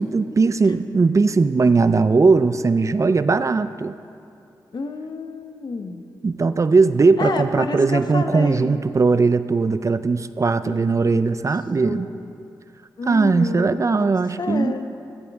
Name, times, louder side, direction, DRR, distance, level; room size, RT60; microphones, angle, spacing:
voice 1, 0.0-4.0 6.2-12.1 13.0-15.0, right 4 dB, 40° right, 12 dB, 0.5 m, -19 dB
voice 2, 4.7-6.0 7.2-8.8 10.6-10.8 11.1-11.5 11.8-12.3 13.0-14.0 14.4-14.9, left 4 dB, 60° left, 7 dB, 0.9 m, -30 dB
15.5 x 15.0 x 3.6 m, 2.5 s
cardioid pair, 65°, 8 cm